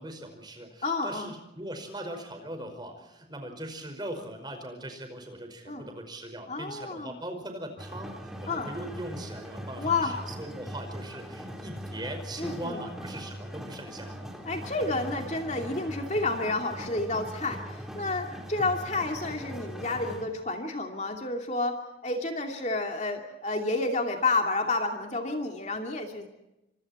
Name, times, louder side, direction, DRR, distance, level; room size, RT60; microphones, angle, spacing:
voice 1, 0.0-14.2 14.5-15.1, right 1 dB, 25° right, 6 dB, 5.2 m, -40 dB
voice 2, 0.8-1.3 5.7-5.9 6.5-7.2 8.5-8.7 9.8-10.2 12.4-12.8 14.5-26.3, left 3 dB, 35° left, 3 dB, 2.6 m, -30 dB
sound 1, 7.8-20.2, equal, ahead, 4.0 m, -40 dB
30.0 x 26.0 x 4.4 m, 0.92 s
head